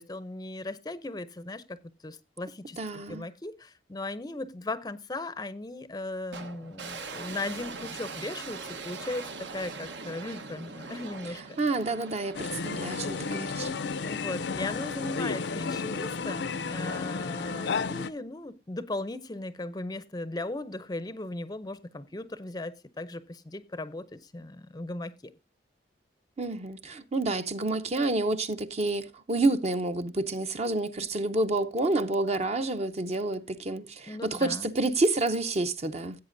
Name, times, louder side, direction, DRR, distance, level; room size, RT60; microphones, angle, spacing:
voice 1, 0.0-11.4 14.0-25.3 34.1-34.7, left 2 dB, 20° left, 0.5 m, -37 dB
voice 2, 2.8-3.3 11.6-13.7 26.4-36.2, right 2 dB, 35° right, 0.7 m, -29 dB
sound 1, 6.3-17.5, right 4 dB, 75° right, 1.1 m, -43 dB
sound 2, 12.3-18.1, left 4 dB, 65° left, 0.5 m, -32 dB
16.0 x 8.3 x 2.6 m
head